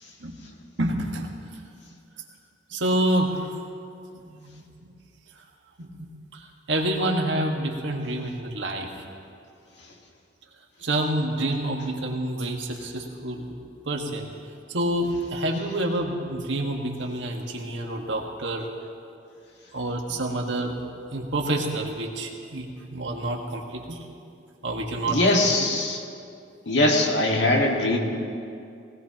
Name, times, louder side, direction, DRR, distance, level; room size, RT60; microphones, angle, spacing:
voice 1, 0.8-1.4 2.7-3.5 4.2-4.6 5.8-6.1 6.3-8.9 10.8-13.5 13.8-14.3 14.7-18.7 19.7-20.8 21.1-24.0 24.6-25.5, right 1 dB, 75° right, 1 dB, 1.6 m, -28 dB
voice 2, 25.1-26.0 26.7-28.0, left 2 dB, 65° left, 0 dB, 1.8 m, -21 dB
20.0 x 17.5 x 3.0 m, 2.4 s
head